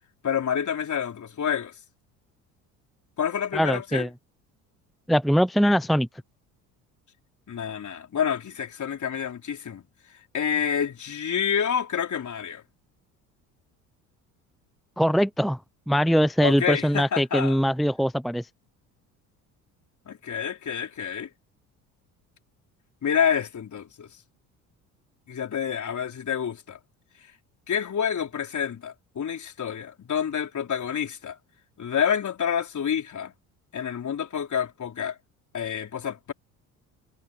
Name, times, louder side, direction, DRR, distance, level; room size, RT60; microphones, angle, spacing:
voice 1, 0.2-1.7 3.2-4.1 7.5-9.8 10.3-12.6 16.4-17.6 20.1-21.3 23.0-24.1 25.3-26.8 27.7-31.4 31.8-33.3 33.7-35.2 35.5-36.3, left 8 dB, 45° left, 4.5 m, -28 dB
voice 2, 3.5-4.1 5.1-6.1 15.0-15.6 15.9-18.5, equal, ahead, 0.8 m, -22 dB
hypercardioid pair, 65°, 42 cm